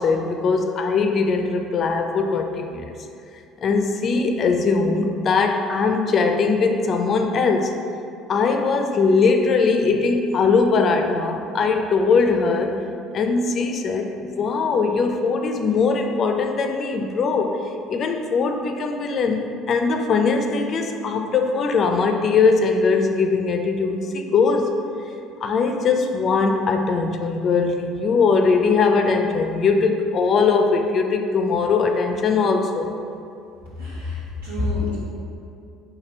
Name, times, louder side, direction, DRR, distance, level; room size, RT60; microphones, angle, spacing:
voice 1, 0.0-2.9 3.6-7.8 8.3-12.8 13.1-17.6 17.9-24.7 25.4-32.9, left 4 dB, 45° left, 4 dB, 0.4 m, -20 dB
voice 2, 33.8-35.0, left 3 dB, 85° right, -8 dB, 1.3 m, -27 dB
4.2 x 2.7 x 4.2 m, 2.6 s
hypercardioid pair, 65°, 0 cm